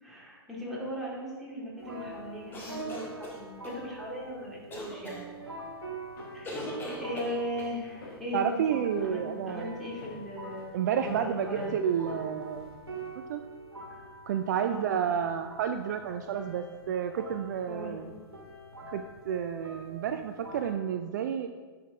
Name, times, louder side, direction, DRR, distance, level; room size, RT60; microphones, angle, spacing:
voice 1, 0.0-5.3 6.3-11.7 14.6-15.0 17.7-18.0, equal, ahead, -6 dB, 2.5 m, -38 dB
sound 1, 1.8-20.8, right 2 dB, 80° right, 1.5 m, -45 dB
sound 2, 2.5-3.8 4.7-5.2 6.4-7.7, left 1 dB, 15° left, 1.5 m, -40 dB
Walk footsteps, 6.0-13.1, left 2 dB, 55° left, 1.7 m, -49 dB
voice 2, 8.3-9.8 10.7-12.7 13.3-13.4 14.3-18.1 18.9-21.5, right 8 dB, 45° right, 7 dB, 0.4 m, -30 dB
9.9 x 6.1 x 3.5 m, 1.4 s
figure-of-eight pair, 110°, 13 cm